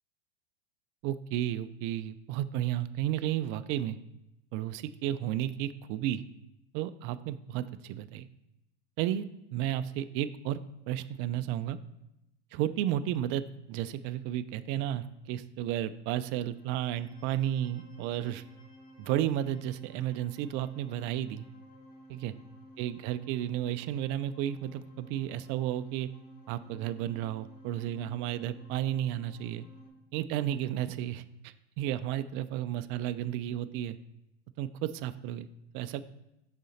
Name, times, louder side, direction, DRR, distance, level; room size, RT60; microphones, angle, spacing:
voice 1, 1.0-4.0 4.5-6.2 6.7-8.3 9.0-9.2 9.5-10.6 10.9-11.8 12.5-18.4 19.0-21.5 22.1-22.3 22.8-26.1 26.5-29.7 30.1-34.0 34.6-35.5 35.7-36.0, right 12 dB, 35° right, 13 dB, 0.4 m, -33 dB
sound 1, 16.3-29.9, equal, 45° left, 1.6 m, -54 dB
6.1 x 4.2 x 4.2 m, 0.88 s
hypercardioid pair, 100°, 34 cm